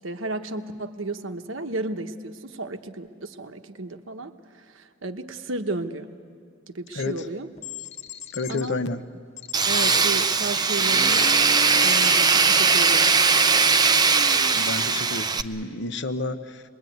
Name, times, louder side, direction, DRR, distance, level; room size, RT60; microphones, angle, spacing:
voice 1, 0.0-6.1 6.7-7.5 8.5-8.8 9.6-13.1, right 2 dB, 65° right, 7 dB, 1.2 m, -33 dB
sound 1, 6.9-7.1 7.6-8.7 9.4-10.7 11.0-12.5, left 13 dB, 30° left, 0.7 m, -38 dB
voice 2, 8.3-9.0 14.6-16.6, left 2 dB, 55° left, 10 dB, 0.9 m, -30 dB
Tools, 9.5-15.4, right 4 dB, 20° right, 0.6 m, -19 dB
25.5 x 21.5 x 9.4 m, 2.3 s
head